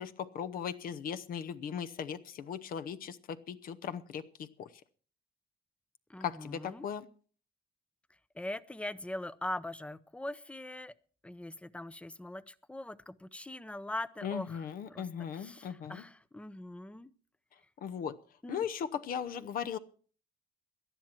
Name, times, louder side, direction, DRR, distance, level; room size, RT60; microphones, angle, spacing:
voice 1, 0.0-4.7 6.2-7.1 14.2-16.0 17.8-18.2 18.5-19.8, left 8 dB, 60° left, 11 dB, 0.8 m, -38 dB
voice 2, 6.1-6.9 8.3-10.9 11.2-14.6 14.9-15.1 15.3-17.1 18.4-18.6, left 1 dB, 5° left, 17 dB, 0.6 m, -41 dB
18.0 x 12.0 x 4.4 m, 0.44 s
cardioid pair, 110°, 17 cm